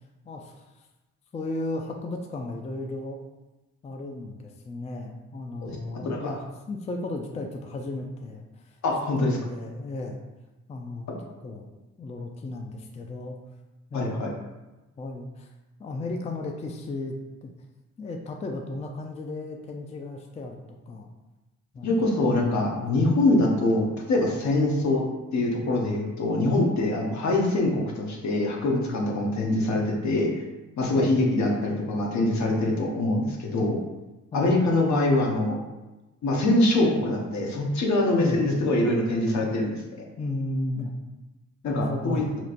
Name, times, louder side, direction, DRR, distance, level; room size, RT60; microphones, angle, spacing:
voice 1, 0.3-0.6 1.3-3.2 3.8-8.4 9.2-10.2 10.7-11.1 11.4-11.7 12.0-13.4 13.9-14.3 15.0-15.5 15.8-17.1 17.4-17.5 18.0-20.6 20.9-21.1 21.7-22.1 31.0-31.3 34.3-34.6 38.1-38.4 40.2-40.9 41.6-42.3, left 2 dB, 20° left, 3 dB, 0.4 m, -34 dB
voice 2, 8.8-9.4 13.9-14.3 21.8-25.0 25.3-30.4 30.8-33.8 34.3-35.6 36.2-39.8 41.6-42.2, left 2 dB, 65° left, -1 dB, 0.9 m, -24 dB
4.3 x 3.0 x 2.5 m, 1.1 s
cardioid pair, 90°, 30 cm